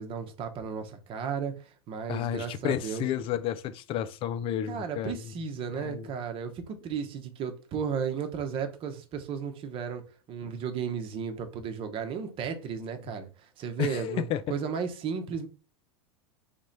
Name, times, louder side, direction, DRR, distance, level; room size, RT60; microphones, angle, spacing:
voice 1, 0.0-1.5 1.9-3.0 4.7-10.0 10.3-13.3 13.6-15.5, right 6 dB, 40° right, 1.0 m, -34 dB
voice 2, 2.1-5.1 5.7-6.1 13.8-14.4, left 10 dB, 40° left, 0.5 m, -31 dB
3.4 x 3.1 x 4.0 m
hypercardioid pair, 100°, 14 cm